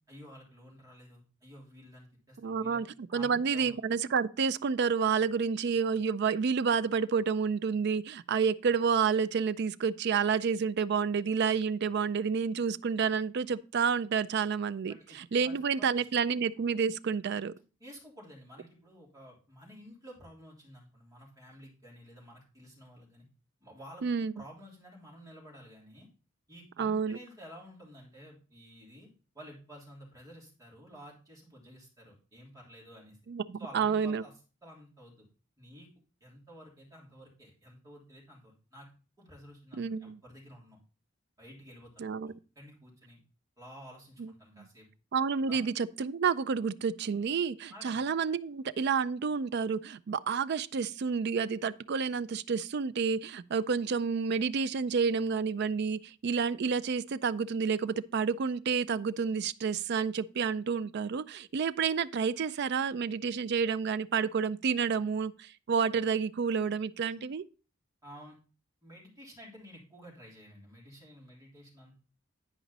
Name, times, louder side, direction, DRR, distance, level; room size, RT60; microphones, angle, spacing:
voice 1, 0.1-2.8 3.1-3.8 14.8-16.1 17.8-23.2 23.6-24.0 24.3-26.1 26.5-29.1 29.3-33.2 33.6-34.3 34.6-35.2 35.6-35.9 36.2-38.9 39.2-40.8 41.4-42.1 42.5-43.2 43.6-44.9 45.5-45.6 47.7-48.0 68.0-68.4 68.8-71.9, equal, 20° right, 3.4 m, -51 dB
voice 2, 2.4-2.9 3.1-17.5 24.0-24.3 26.8-27.2 33.3-34.2 39.7-40.2 42.0-42.3 44.2-44.3 45.1-67.4, right 6 dB, 55° right, 0.4 m, -29 dB
10.0 x 5.0 x 4.0 m
head